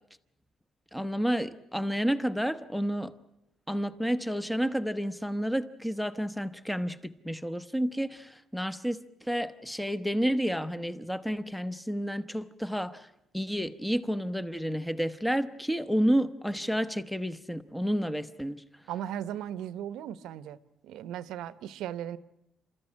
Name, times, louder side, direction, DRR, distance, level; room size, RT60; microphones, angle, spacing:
voice 1, 0.9-3.1 3.7-13.1 13.3-18.6, equal, ahead, 0.9 m, -30 dB
voice 2, 18.9-20.6 20.8-22.2, right 10 dB, 85° right, 1.0 m, -37 dB
29.5 x 13.5 x 9.9 m
cardioid pair, 145°, 0 cm